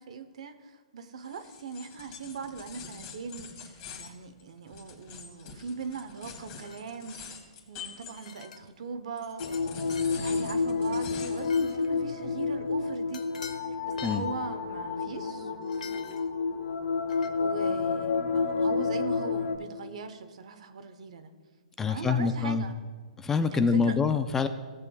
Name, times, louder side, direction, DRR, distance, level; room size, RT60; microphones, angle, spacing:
voice 1, 0.0-7.2 7.7-13.3 13.8-15.5 17.4-21.3 21.9-22.8 23.5-24.0, right 5 dB, 65° right, 10 dB, 1.0 m, -40 dB
sound 1, 1.2-8.7 9.2-11.5, left 6 dB, 30° left, 2.0 m, -45 dB
sound 2, 6.6-7.0 8.1-8.7 9.5-9.6 9.9-10.2 11.4-11.9 13.1-13.6 13.9-14.3 15.6-16.3 17.1-17.3, left 7 dB, 85° left, 1.1 m, -46 dB
sound 3, 9.4-19.6, left 4 dB, 60° left, 1.2 m, -30 dB
voice 2, 21.8-22.6 23.2-24.5, left 5 dB, 10° left, 10 dB, 0.3 m, -26 dB
16.0 x 8.2 x 2.4 m, 1.5 s
hypercardioid pair, 150°, 4 cm